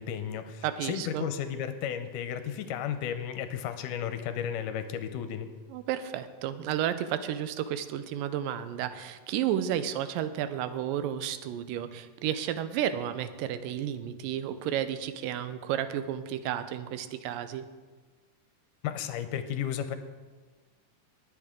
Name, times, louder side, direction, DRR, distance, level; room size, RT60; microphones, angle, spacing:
voice 1, 0.0-5.5 18.8-20.0, left 9 dB, 80° left, 9 dB, 2.2 m, -33 dB
voice 2, 0.6-1.3 5.7-17.7, right 10 dB, 85° right, 12 dB, 2.3 m, -32 dB
19.5 x 8.0 x 3.7 m, 1.4 s
omnidirectional pair, 3.9 m